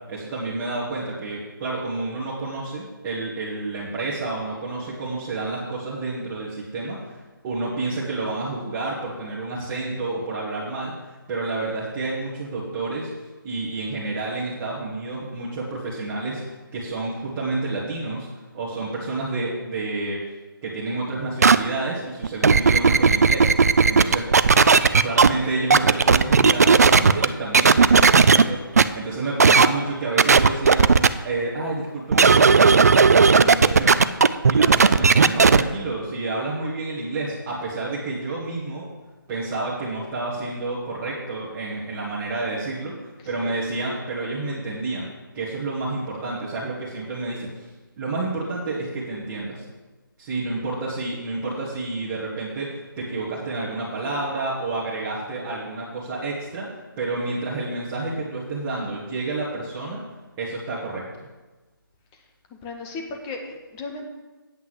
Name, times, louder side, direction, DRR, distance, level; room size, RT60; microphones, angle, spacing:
voice 1, 0.1-10.9 11.3-13.1 13.4-18.3 18.5-20.2 20.6-23.5 23.8-24.3 25.0-30.9 31.2-34.0 34.5-38.9 39.3-45.1 45.3-47.7 48.0-49.6 50.2-60.0 60.4-61.0, right 2 dB, 15° right, -9 dB, 1.6 m, -29 dB
sound 1, 21.4-21.6 22.2-25.3 25.7-27.3 27.5-28.4 28.8-28.9 29.4-29.7 30.2-31.1 32.1-35.6, right 5 dB, 45° right, 0.4 m, -14 dB
voice 2, 62.5-64.1, left 3 dB, 10° left, 2 dB, 0.7 m, -36 dB
8.2 x 5.6 x 7.8 m, 1.2 s
figure-of-eight pair, 160°, 12 cm